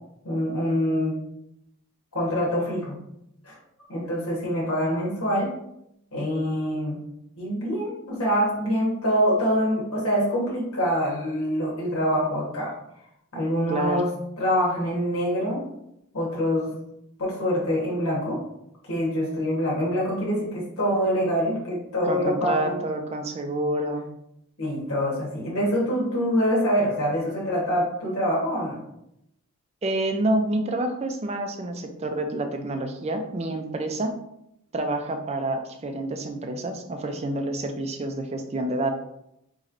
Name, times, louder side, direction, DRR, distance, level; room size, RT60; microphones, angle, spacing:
voice 1, 0.2-1.2 2.1-3.0 3.4-3.6 3.9-5.5 6.1-7.0 7.4-12.7 13.3-14.1 14.4-15.6 16.1-16.7 17.2-18.4 18.9-22.8 24.6-28.8, equal, 75° left, -5 dB, 1.2 m, -25 dB
voice 2, 13.7-14.0 22.0-24.1 29.8-34.1 34.7-38.9, right 1 dB, 30° right, 5 dB, 0.4 m, -28 dB
4.2 x 3.0 x 2.6 m, 0.80 s
head